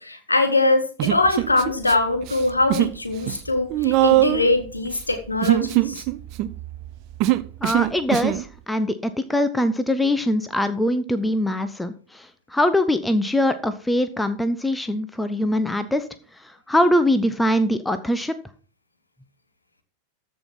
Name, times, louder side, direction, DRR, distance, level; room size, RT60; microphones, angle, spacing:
voice 1, 0.0-6.0, left 2 dB, 80° left, 1.6 m, -22 dB
Human voice, 1.0-1.9 2.2-3.0 3.2-8.4, right 16 dB, 40° right, 0.6 m, -22 dB
voice 2, 7.6-16.1 16.3-18.3, left 1 dB, 5° left, 0.8 m, -22 dB
14.0 x 5.4 x 5.9 m
figure-of-eight pair, 90°, 0 cm